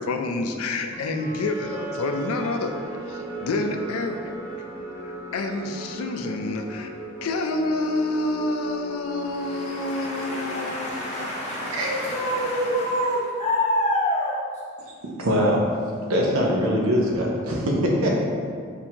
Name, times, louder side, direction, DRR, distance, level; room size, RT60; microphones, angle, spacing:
voice 1, 0.0-2.7 3.1-4.2 5.1-6.9 7.2-11.3 11.6-11.7, left 2 dB, 85° left, 5 dB, 0.4 m, -28 dB
sound 1, 0.9-11.1, right 1 dB, 15° right, 0.3 m, -37 dB
voice 2, 9.2-14.4, equal, 35° left, -6 dB, 0.9 m, -26 dB
voice 3, 15.2-15.6 16.1-18.3, equal, 90° right, -1 dB, 0.7 m, -22 dB
4.2 x 2.7 x 2.8 m, 2.2 s
head